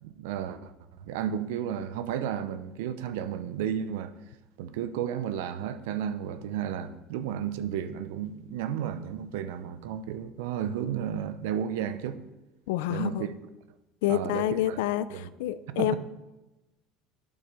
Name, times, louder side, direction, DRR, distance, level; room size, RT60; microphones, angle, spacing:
voice 1, 0.0-0.7 1.0-4.1 4.6-12.2 12.9-13.3 14.1-14.8 15.1-15.3 15.8-16.0, right 9 dB, 85° right, 0.8 m, -33 dB
voice 2, 12.7-13.3 14.0-16.0, left 13 dB, 85° left, 0.6 m, -28 dB
8.9 x 7.6 x 6.8 m
supercardioid pair, 125°, 0 cm